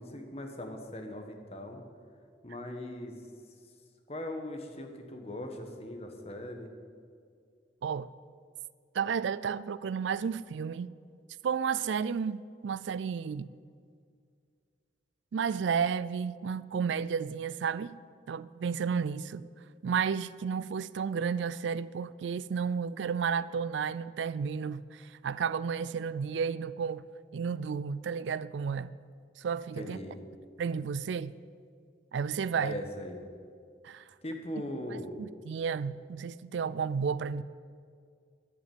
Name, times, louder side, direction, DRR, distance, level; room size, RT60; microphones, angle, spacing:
voice 1, 0.0-1.8 2.4-3.2 4.1-6.7 29.8-30.2 32.6-33.2 34.2-35.2, left 1 dB, 30° left, 1.3 m, -40 dB
voice 2, 8.9-10.9 11.4-13.5 15.3-18.0 18.3-19.5 19.8-27.1 27.3-28.9 29.4-30.0 30.6-31.4 32.1-32.7 33.8-34.1 34.9-37.4, right 6 dB, 75° right, 0.3 m, -32 dB
11.0 x 8.1 x 9.3 m
head